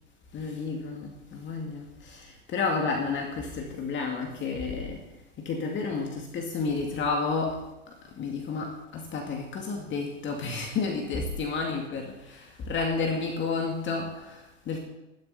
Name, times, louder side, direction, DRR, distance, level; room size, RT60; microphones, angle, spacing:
voice 1, 0.3-5.0 5.4-14.8, left 4 dB, 30° left, 1 dB, 2.1 m, -31 dB
14.0 x 12.5 x 4.2 m, 0.95 s
hypercardioid pair, 95°, 37 cm